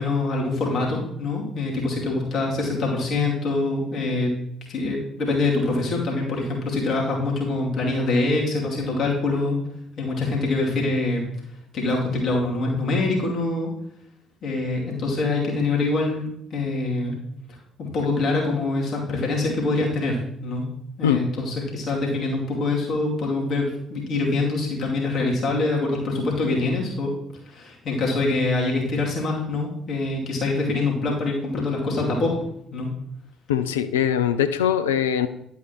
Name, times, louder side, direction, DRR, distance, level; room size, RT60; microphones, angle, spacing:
voice 1, 0.0-4.3 4.7-9.6 10.0-11.3 11.7-13.7 14.4-17.2 17.8-20.7 21.0-27.1 27.4-32.4 32.7-32.9, left 2 dB, 50° left, -2 dB, 2.6 m, -24 dB
voice 2, 33.5-35.3, left 9 dB, 80° left, 10 dB, 0.4 m, -22 dB
11.0 x 8.5 x 3.0 m, 0.73 s
figure-of-eight pair, 50°, 0 cm